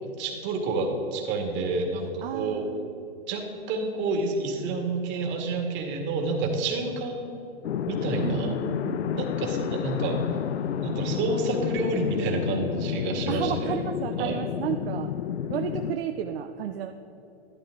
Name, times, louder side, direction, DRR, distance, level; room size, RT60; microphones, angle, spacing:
voice 1, 0.2-2.6 3.3-3.4 3.7-7.4 7.9-8.5 9.2-10.2 10.8-13.7 14.2-14.4, right 3 dB, 35° right, 2 dB, 2.0 m, -29 dB
voice 2, 2.2-3.1 8.2-9.3 13.3-15.1 15.5-16.9, right 9 dB, 60° right, 6 dB, 0.7 m, -32 dB
sound 1, 7.6-16.0, left 9 dB, 90° left, 0.5 m, -30 dB
12.0 x 10.5 x 3.8 m, 2.8 s
hypercardioid pair, 125°, 32 cm